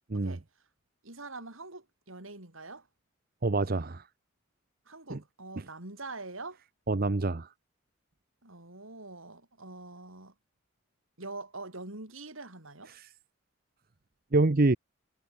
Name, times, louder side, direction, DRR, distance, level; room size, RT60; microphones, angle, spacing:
voice 1, 1.0-2.9 4.9-6.6 8.4-10.3 11.2-12.9, right 3 dB, 75° right, 4.9 m, -44 dB
voice 2, 3.4-4.0 5.1-5.2 5.6-5.7 6.9-7.5 12.9-13.1 14.3-14.8, right 2 dB, 45° right, 0.8 m, -26 dB
head